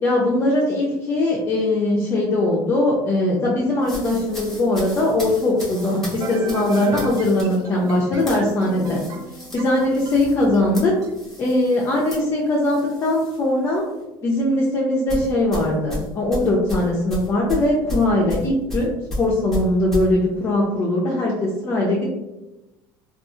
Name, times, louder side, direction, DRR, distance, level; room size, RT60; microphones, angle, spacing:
voice 1, 0.0-9.0 9.5-10.9 11.4-13.8 14.2-22.1, left 1 dB, 30° left, -4 dB, 0.4 m, -20 dB
sound 1, 3.8-13.4 13.7-14.0 15.1-20.1, left 1 dB, 5° left, 0.8 m, -34 dB
sound 2, 4.3-11.1, right 5 dB, 45° right, 0.4 m, -36 dB
2.6 x 2.3 x 2.5 m, 1.0 s
cardioid pair, 135°, 9 cm